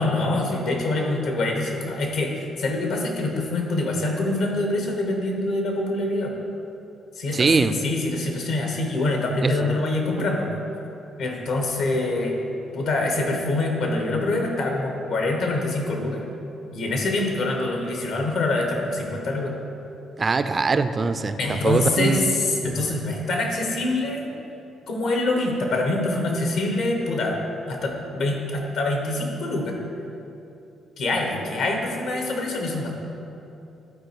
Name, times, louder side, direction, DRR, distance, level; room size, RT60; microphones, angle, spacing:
voice 1, 0.0-2.3 2.6-6.3 7.2-10.5 11.2-12.3 12.7-16.3 16.7-19.5 21.4-24.3 24.9-27.4 27.7-29.8 31.0-32.9, left 2 dB, 80° left, 1 dB, 1.5 m, -25 dB
voice 2, 7.3-7.8 9.4-9.8 10.2-10.3 20.2-22.3, right 4 dB, 35° right, 10 dB, 0.4 m, -22 dB
12.0 x 4.4 x 4.8 m, 2.8 s
cardioid pair, 90°, 0 cm